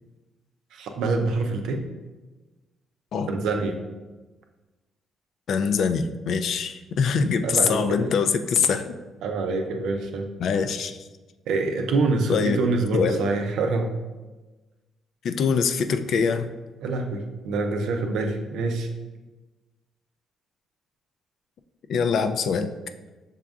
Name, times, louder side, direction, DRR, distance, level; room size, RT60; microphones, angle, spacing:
voice 1, 0.7-1.8 3.3-3.8 7.4-8.1 9.2-10.3 11.5-14.0 16.8-18.9, right 3 dB, 85° right, 4 dB, 0.5 m, -26 dB
voice 2, 5.5-8.9 10.4-11.0 12.3-12.6 12.9-13.2 15.2-16.5 21.9-22.7, left 5 dB, 65° left, 9 dB, 0.3 m, -23 dB
6.1 x 3.6 x 2.3 m, 1.2 s
cardioid pair, 90°, 0 cm